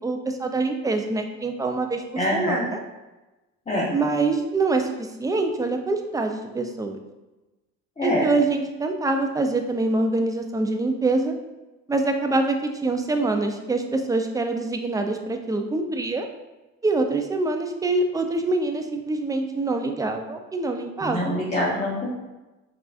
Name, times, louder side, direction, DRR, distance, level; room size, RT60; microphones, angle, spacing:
voice 1, 0.0-2.0 2.3-2.8 3.9-7.0 8.0-11.3 11.9-16.3 16.8-21.4, right 3 dB, 10° right, 5 dB, 0.4 m, -25 dB
voice 2, 2.2-2.6 3.7-3.9 8.0-8.3 21.0-22.2, left 1 dB, 20° left, -6 dB, 0.8 m, -25 dB
4.6 x 2.4 x 2.4 m, 1.1 s
supercardioid pair, 70°, 33 cm